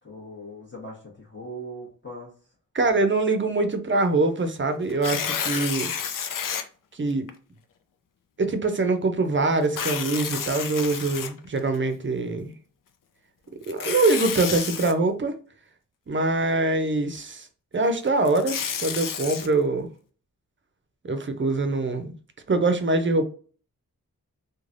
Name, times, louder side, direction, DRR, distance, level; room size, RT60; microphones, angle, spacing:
voice 1, 0.0-2.3, right 1 dB, 35° left, 1.1 m, -40 dB
voice 2, 2.7-5.9 6.9-7.3 8.4-12.5 13.7-15.3 16.1-17.5 17.7-19.9 21.0-22.2 22.5-23.2, right 3 dB, 35° right, 0.6 m, -24 dB
Tearing, 4.9-6.6 7.3-7.4 9.6-11.8 13.6-14.9 18.1-19.5, left 7 dB, 70° left, 0.5 m, -30 dB
3.2 x 2.2 x 2.5 m
wide cardioid pair, 90°, 34 cm